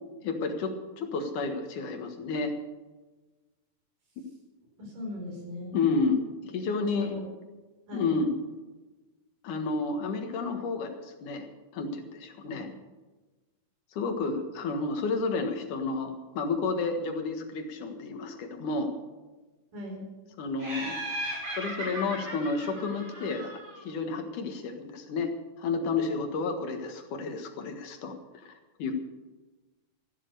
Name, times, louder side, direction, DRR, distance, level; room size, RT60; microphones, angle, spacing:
voice 1, 0.2-2.5 5.7-7.1 7.9-8.4 9.4-11.5 11.7-12.7 13.9-18.9 20.4-21.0 21.6-25.3 25.6-28.5 28.8-28.9, left 4 dB, 75° left, 5 dB, 3.1 m, -31 dB
voice 2, 4.8-5.8 6.9-7.3 7.9-8.2 12.5-12.7 19.7-20.1, equal, 80° right, 0 dB, 6.3 m, -38 dB
Laughter, 20.6-23.9, right 1 dB, 60° right, 7.3 m, -37 dB
14.5 x 12.0 x 6.8 m, 1.2 s
omnidirectional pair, 3.7 m